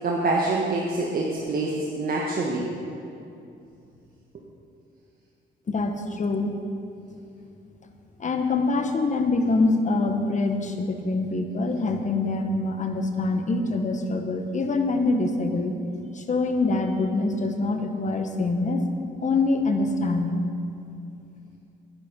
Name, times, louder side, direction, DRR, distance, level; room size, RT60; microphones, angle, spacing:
voice 1, 0.0-2.7, right 2 dB, 45° right, -2 dB, 1.4 m, -26 dB
voice 2, 5.7-6.5 8.2-15.7 16.1-18.9 19.2-20.4, left 3 dB, 40° left, 6 dB, 1.2 m, -25 dB
10.5 x 9.7 x 5.3 m, 2.6 s
cardioid pair, 90°, 20 cm